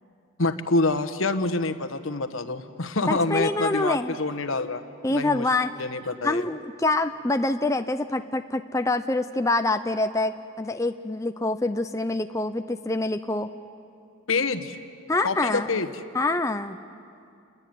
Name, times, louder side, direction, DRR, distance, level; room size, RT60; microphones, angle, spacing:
voice 1, 0.4-4.8 5.1-5.5 5.8-6.4 14.3-14.8 15.2-15.9, left 3 dB, 75° left, 10 dB, 1.3 m, -26 dB
voice 2, 3.1-4.2 5.0-5.7 6.2-13.5 15.1-15.7 16.1-16.8, left 2 dB, 15° left, 7 dB, 0.6 m, -26 dB
28.5 x 22.0 x 9.3 m, 2.4 s
head